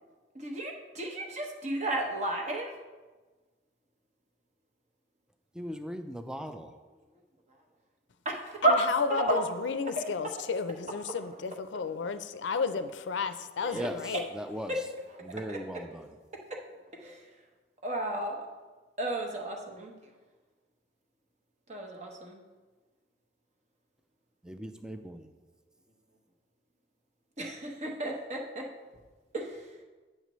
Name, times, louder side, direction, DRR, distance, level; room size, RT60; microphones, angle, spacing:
voice 1, 0.4-2.7 8.2-8.8 9.1-9.4 10.0-10.1 13.6-13.9 14.7-14.8 15.5-15.6 16.5-16.6 16.9-17.2 17.8-18.5 19.0-19.9 21.7-22.4 27.4-28.7 29.3-29.6, right 1 dB, 40° right, 1.0 m, -32 dB
voice 2, 5.5-6.7 13.7-14.9 15.2-16.2 24.4-25.3, equal, 5° right, 0.3 m, -39 dB
voice 3, 8.6-14.3, left 5 dB, 70° left, 0.4 m, -32 dB
9.6 x 6.5 x 3.1 m
head